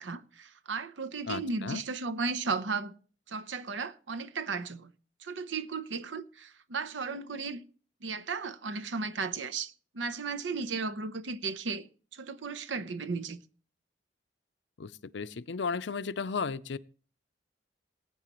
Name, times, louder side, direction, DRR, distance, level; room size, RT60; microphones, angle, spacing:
voice 1, 0.0-2.9 3.3-4.9 5.2-7.6 8.0-11.9 12.1-13.4, right 4 dB, 85° right, 0.8 m, -35 dB
voice 2, 1.3-1.8 14.8-16.8, left 5 dB, 75° left, 0.5 m, -34 dB
19.0 x 9.2 x 3.0 m
head